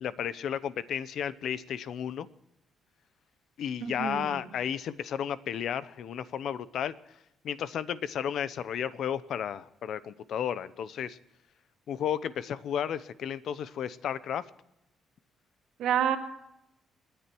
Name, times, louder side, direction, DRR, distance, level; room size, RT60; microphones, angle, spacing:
voice 1, 0.0-2.3 3.6-6.9 7.4-11.2 11.9-14.4, left 9 dB, 60° left, 16 dB, 0.8 m, -33 dB
voice 2, 3.8-4.5 15.8-16.2, right 9 dB, 85° right, 6 dB, 2.0 m, -29 dB
28.5 x 10.0 x 4.5 m, 0.85 s
cardioid pair, 155°, 0 cm